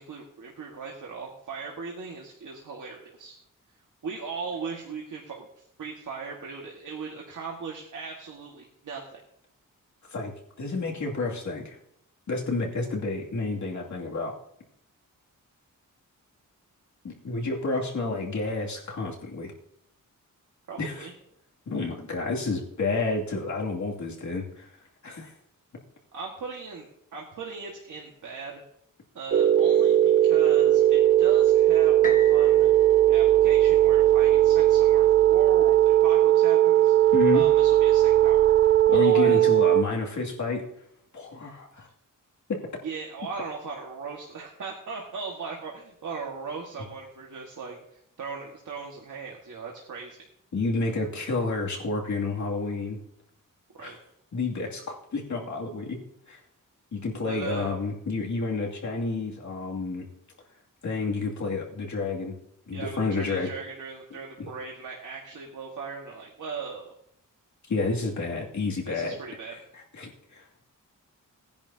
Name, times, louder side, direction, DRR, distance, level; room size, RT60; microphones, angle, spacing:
voice 1, 0.0-3.4 4.0-9.2 20.7-21.1 26.1-26.9 27.1-28.6 29.1-32.7 33.1-39.5 42.8-47.8 48.2-50.2 53.7-54.0 57.2-57.7 62.7-66.9 68.9-69.5, right 5 dB, 70° right, -1 dB, 1.8 m, -38 dB
voice 2, 10.6-11.8 12.3-14.3 17.0-19.5 20.8-21.1 21.7-24.7 25.0-25.3 37.1-37.4 38.9-40.6 41.1-41.9 42.5-42.6 50.5-53.0 53.8-53.9 54.3-56.0 56.3-56.4 56.9-60.1 60.8-62.4 62.7-63.5 64.4-64.5 67.7-69.1 70.0-70.4, left 3 dB, 60° left, -2 dB, 2.6 m, -30 dB
sound 1, 29.3-39.8, right 12 dB, 40° right, 0.4 m, -19 dB
sound 2, 32.0-36.0 36.6-36.7, left 2 dB, 25° left, 1.3 m, -42 dB
19.0 x 10.5 x 2.8 m, 0.75 s
wide cardioid pair, 160°, 32 cm